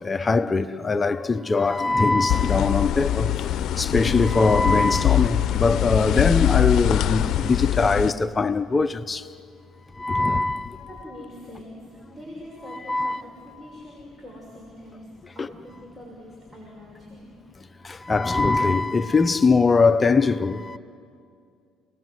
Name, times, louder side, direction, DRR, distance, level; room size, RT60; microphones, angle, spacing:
voice 1, 0.0-3.4 3.8-9.3 10.0-10.8 12.7-13.2 15.4-15.5 17.8-20.8, left 3 dB, 25° left, 0.7 m, -21 dB
sound 1, 2.3-8.1, left 13 dB, 60° left, 0.8 m, -23 dB
voice 2, 10.9-17.3, left 1 dB, 15° right, 6.3 m, -43 dB
28.0 x 20.0 x 7.9 m
supercardioid pair, 70°, 0 cm